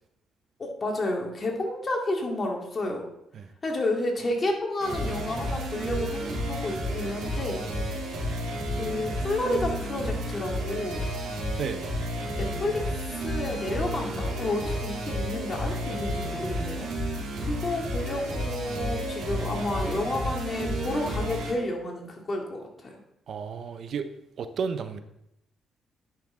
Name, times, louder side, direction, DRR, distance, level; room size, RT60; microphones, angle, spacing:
voice 1, 0.6-3.1 3.6-7.7 8.8-11.0 12.4-22.9, left 2 dB, 35° left, 0 dB, 2.3 m, -31 dB
sound 1, 4.8-21.5, equal, 85° right, 3.3 m, -31 dB
voice 2, 23.3-24.1 24.4-25.0, right 6 dB, 60° right, 10 dB, 0.6 m, -32 dB
10.5 x 5.8 x 3.7 m, 0.81 s
cardioid pair, 90°, 0 cm